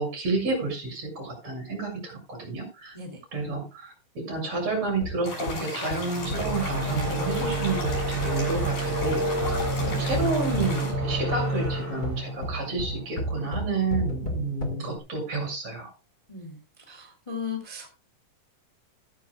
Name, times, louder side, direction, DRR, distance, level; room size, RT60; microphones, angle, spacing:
voice 1, 0.0-3.0 3.3-15.9, right 3 dB, 50° right, 4 dB, 7.9 m, -30 dB
sound 1, 5.0-15.0, equal, 30° left, 2.2 m, -34 dB
sound 2, 5.2-10.9, left 3 dB, 85° left, 8.7 m, -36 dB
sound 3, 6.1-13.5, right 2 dB, 25° right, 7.1 m, -30 dB
voice 2, 16.9-17.9, left 5 dB, 10° left, 3 dB, 2.6 m, -36 dB
15.0 x 13.5 x 2.4 m, 0.30 s
omnidirectional pair, 3.9 m